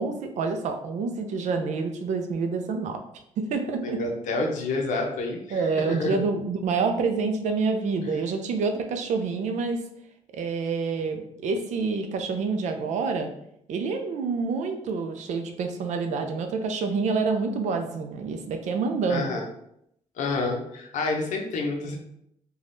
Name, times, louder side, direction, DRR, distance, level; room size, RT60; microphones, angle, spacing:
voice 1, 0.0-3.0 3.4-4.0 5.5-9.8 10.3-13.3 13.7-19.3, right 4 dB, 65° right, 5 dB, 0.4 m, -27 dB
voice 2, 3.8-5.6 5.9-6.2 19.1-19.4 20.2-22.0, left 3 dB, 70° left, 1 dB, 0.6 m, -28 dB
3.3 x 2.3 x 2.5 m, 0.75 s
cardioid pair, 165°, 13 cm